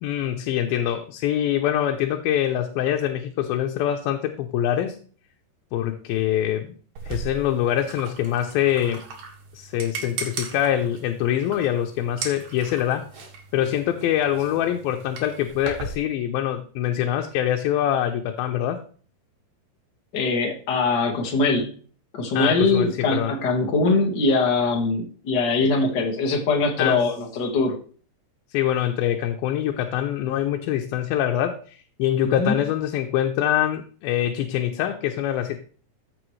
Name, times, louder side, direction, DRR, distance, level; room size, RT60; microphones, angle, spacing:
voice 1, 0.0-5.0 5.7-6.7 7.1-9.0 9.5-13.1 13.5-18.8 22.3-23.3 26.8-27.0 28.5-35.6, left 11 dB, 85° left, 4 dB, 2.6 m, -24 dB
Paintbrush being cleaned in a jar - faster version, 7.0-16.0, right 4 dB, 70° right, 3.5 m, -37 dB
voice 2, 20.1-21.7 22.1-27.8 32.2-32.6, left 3 dB, 40° left, 2 dB, 1.6 m, -22 dB
14.0 x 6.7 x 3.2 m, 0.42 s
omnidirectional pair, 4.1 m